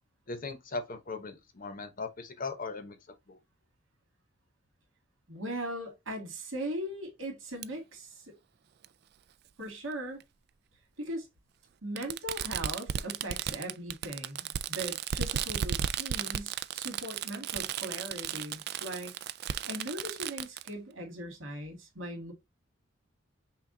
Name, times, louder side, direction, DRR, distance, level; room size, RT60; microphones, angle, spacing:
voice 1, 0.3-3.0 3.3-3.4, left 3 dB, 45° left, 0.8 m, -38 dB
voice 2, 5.3-8.3 9.6-10.2 11.0-11.3 11.8-19.1 19.7-22.3, right 1 dB, 80° right, 2.1 m, -39 dB
Fireworks, 7.6-7.7 8.8-8.9 10.2-10.3 12.0-20.7, right 9 dB, 55° right, 0.3 m, -34 dB
5.8 x 2.3 x 3.8 m
head